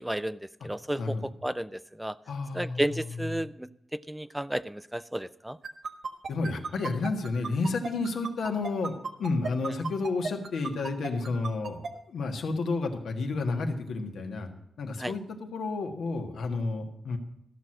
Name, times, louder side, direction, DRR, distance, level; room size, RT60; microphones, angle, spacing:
voice 1, 0.0-2.2 2.5-5.6 15.0-15.1, right 1 dB, 5° right, 16 dB, 0.3 m, -33 dB
voice 2, 1.0-1.3 2.3-3.4 6.3-8.9 9.2-11.8 12.1-14.5 14.8-17.2, left 3 dB, 85° left, 4 dB, 1.6 m, -31 dB
sound 1, 5.6-11.9, right 4 dB, 55° right, 1.3 m, -34 dB
13.5 x 6.2 x 7.6 m, 0.82 s
wide cardioid pair, 110°, 0 cm